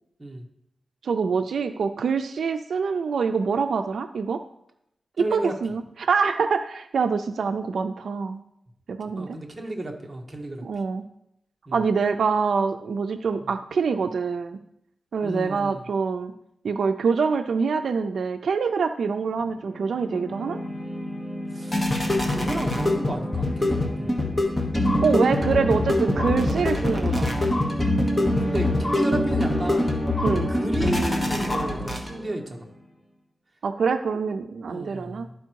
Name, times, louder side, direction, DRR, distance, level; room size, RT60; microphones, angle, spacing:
voice 1, 1.0-4.4 5.2-8.4 8.9-9.4 10.6-11.0 11.7-14.6 15.1-16.3 16.6-20.6 25.0-27.4 30.2-30.5 33.6-35.3, right 5 dB, 80° right, 9 dB, 0.4 m, -25 dB
voice 2, 5.2-5.5 9.2-10.6 11.7-11.8 13.4-13.5 15.2-15.8 21.5-21.9 22.3-24.2 28.4-30.1 30.5-32.7 34.7-35.3, right 1 dB, 20° right, 1 dB, 1.2 m, -33 dB
sound 1, 19.6-32.4, left 1 dB, 15° left, 1.2 m, -24 dB
11.5 x 4.4 x 4.6 m, 0.77 s
wide cardioid pair, 130°, 0 cm